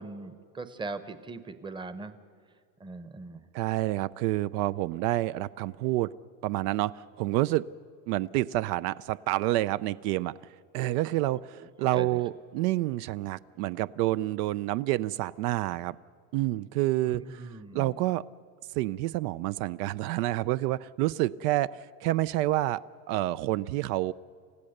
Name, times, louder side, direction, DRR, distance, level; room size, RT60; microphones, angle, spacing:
voice 1, 0.0-2.2 2.8-3.5 11.3-12.2 17.1-18.0, right 3 dB, 10° right, 11 dB, 0.8 m, -41 dB
voice 2, 3.5-6.1 6.4-7.7 8.1-10.4 10.7-16.0 16.3-17.2 17.7-18.2 18.7-22.8 23.1-24.1, right 16 dB, 70° right, 16 dB, 0.6 m, -28 dB
29.0 x 15.0 x 6.5 m, 2.2 s
supercardioid pair, 130°, 48 cm